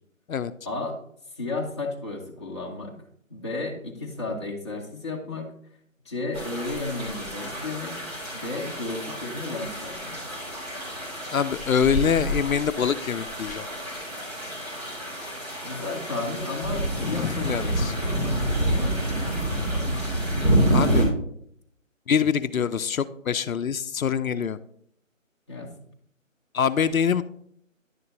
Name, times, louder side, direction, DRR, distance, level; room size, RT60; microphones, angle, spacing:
voice 1, 0.6-1.0 1.3-3.0 3.3-5.5 6.0-8.0 8.3-10.2 15.6-20.2 25.5-25.9, left 2 dB, 20° left, -3 dB, 0.9 m, -34 dB
sound 1, 6.3-21.1, right 1 dB, 30° right, 3.0 m, -28 dB
voice 2, 11.3-13.7 17.0-17.9 20.7-21.1 22.1-24.6 26.5-27.2, left 7 dB, 85° left, 13 dB, 0.6 m, -25 dB
10.5 x 6.6 x 2.6 m, 0.68 s
figure-of-eight pair, 160°, 40 cm